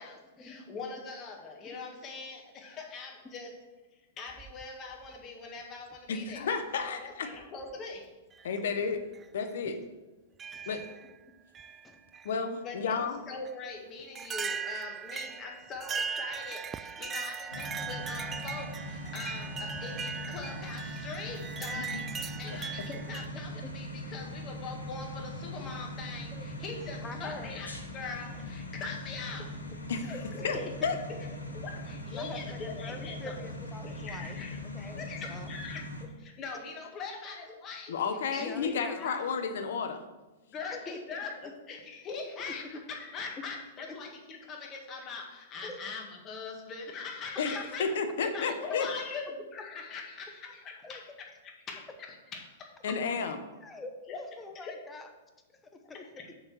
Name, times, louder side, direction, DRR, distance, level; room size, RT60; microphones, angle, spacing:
voice 1, 0.0-3.5 3.9-6.5 6.7-8.2 12.6-29.5 30.1-30.7 31.1-31.2 31.5-33.5 33.8-34.6 35.0-35.8 36.2-37.9 38.3-39.2 40.5-47.9 48.2-53.3 54.1-54.2 54.6-54.8 55.8-56.3, left 4 dB, 30° left, 1 dB, 1.9 m, -42 dB
sound 1, 4.3-5.1 6.3-6.4 7.4-7.7 8.3-8.5 9.1-9.3 10.4-11.1 11.5-12.3 13.4-13.5 14.1-23.3, right 6 dB, 20° right, 0.3 m, -39 dB
voice 2, 6.1-7.3 8.4-9.0 9.3-9.7 10.7-10.8 12.2-13.2 21.9-22.0 22.5-22.9 29.9-30.1 30.4-30.6 30.8-31.0 37.9-40.0 47.4-47.5 47.8-48.9 52.8-53.4, left 5 dB, 60° left, 7 dB, 1.1 m, -32 dB
sound 2, 17.5-36.0, left 1 dB, 90° left, 1.6 m, -41 dB
voice 3, 27.0-27.5 30.0-30.2 30.8-31.0 32.0-34.4 34.7-35.5 38.4-39.1 40.7-41.2 45.6-45.8 47.5-47.7 50.8-51.0 51.7-51.8 53.6-55.1 55.6-56.0, left 2 dB, 15° left, 5 dB, 1.1 m, -44 dB
6.5 x 5.8 x 6.4 m, 1.1 s
figure-of-eight pair, 105°, 0 cm